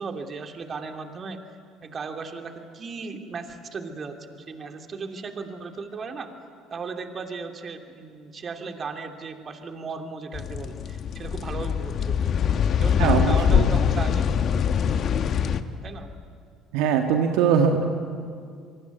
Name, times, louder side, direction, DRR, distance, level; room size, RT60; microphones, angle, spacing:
voice 1, 0.0-1.4 1.8-6.3 6.7-12.4 12.8-14.3 15.8-16.1, right 4 dB, 40° right, 5 dB, 2.9 m, -36 dB
sound 1, 10.3-15.6, left 8 dB, 50° left, 1.4 m, -23 dB
voice 2, 13.0-13.7 16.7-17.8, right 7 dB, 70° right, 4 dB, 1.8 m, -21 dB
25.5 x 24.0 x 9.3 m, 2.2 s
hypercardioid pair, 60°, 0 cm